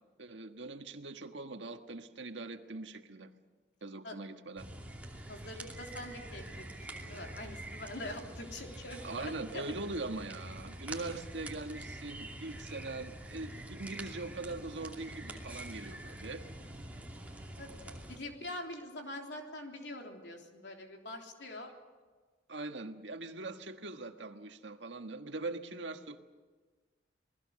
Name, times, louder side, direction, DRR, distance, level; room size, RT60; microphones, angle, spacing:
voice 1, 0.2-3.3 3.8-4.7 9.0-16.4 22.5-26.2, right 2 dB, 80° right, 6 dB, 1.6 m, -42 dB
sound 1, 4.6-18.2, right 1 dB, 10° right, 2.7 m, -46 dB
voice 2, 5.3-9.6 17.6-21.7, left 1 dB, 70° left, 2 dB, 3.5 m, -44 dB
28.0 x 20.0 x 6.5 m, 1.4 s
head